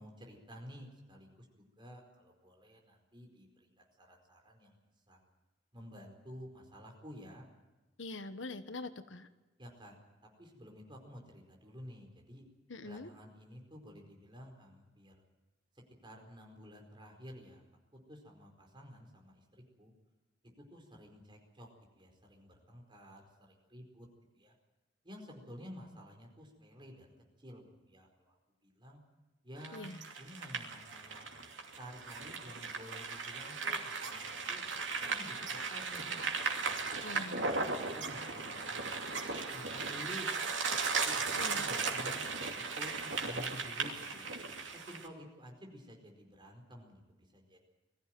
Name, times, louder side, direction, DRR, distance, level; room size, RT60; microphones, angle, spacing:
voice 1, 0.0-4.7 5.1-5.2 5.7-7.5 9.6-10.0 10.2-12.4 12.8-15.2 16.0-17.6 18.1-19.9 20.6-21.7 22.0-24.1 24.3-24.5 25.0-27.1 27.4-28.4 28.6-29.0 29.4-29.9 30.2-31.3 31.8-34.2 34.5-36.0 36.4-37.3 37.7-39.0 39.5-40.3 40.9-42.3 42.7-44.3 44.7-47.6, equal, 25° right, 2 dB, 4.8 m, -52 dB
voice 2, 8.0-9.3 12.7-13.1 29.7-30.0 37.0-37.4 41.4-41.7, left 2 dB, 85° left, 11 dB, 1.3 m, -44 dB
sound 1, 29.6-45.1, right 4 dB, 90° right, 2.8 m, -37 dB
21.5 x 14.5 x 9.2 m, 1.1 s
head